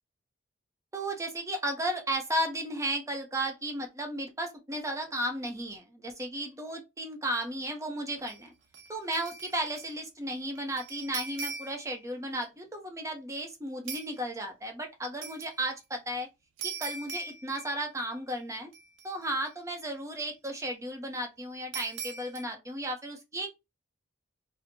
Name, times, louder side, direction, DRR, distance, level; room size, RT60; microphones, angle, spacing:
voice 1, 0.9-8.5 8.9-16.3 16.6-18.7 19.0-23.5, right 1 dB, 15° right, 0.6 m, -34 dB
sound 1, 8.2-8.4 8.7-10.0 10.3-11.9 13.9-14.1 15.2-15.5 16.6-18.0 18.3-18.4 18.7-19.5 21.7-22.4, right 5 dB, 85° right, 0.7 m, -41 dB
4.3 x 2.0 x 2.6 m
head